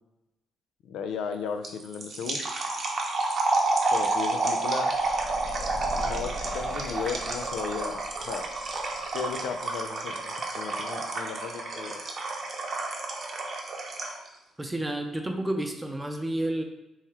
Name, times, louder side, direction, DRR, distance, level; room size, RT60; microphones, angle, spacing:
voice 1, 0.8-2.4 3.9-4.9 5.9-8.5 9.1-12.0, left 6 dB, 80° left, 6 dB, 0.4 m, -35 dB
sound 1, 1.6-14.3, right 3 dB, 50° right, 0.8 m, -30 dB
sound 2, 4.9-9.9, left 1 dB, 55° left, 1.0 m, -41 dB
voice 2, 14.6-16.6, right 1 dB, 15° right, 4 dB, 0.6 m, -30 dB
3.8 x 3.0 x 4.2 m, 0.94 s
cardioid pair, 90°, 0 cm